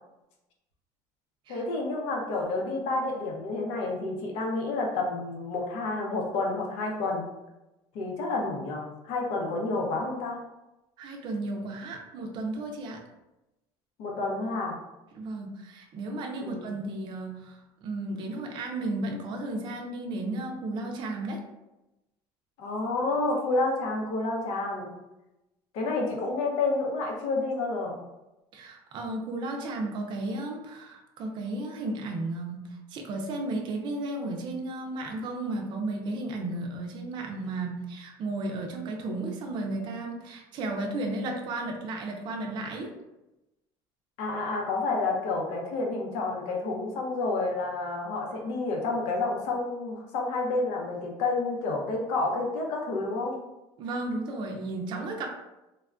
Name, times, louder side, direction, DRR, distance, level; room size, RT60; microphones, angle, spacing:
voice 1, 1.5-7.3 7.9-10.4 14.0-14.8 16.4-16.7 22.6-25.0 25.7-28.0 44.2-53.4, left 3 dB, 80° left, 0 dB, 0.7 m, -29 dB
voice 2, 11.0-13.0 15.1-21.4 28.5-32.6 32.9-42.9 53.8-55.3, right 2 dB, 45° right, 2 dB, 0.4 m, -34 dB
3.4 x 2.2 x 2.4 m, 0.97 s
cardioid pair, 160°, 11 cm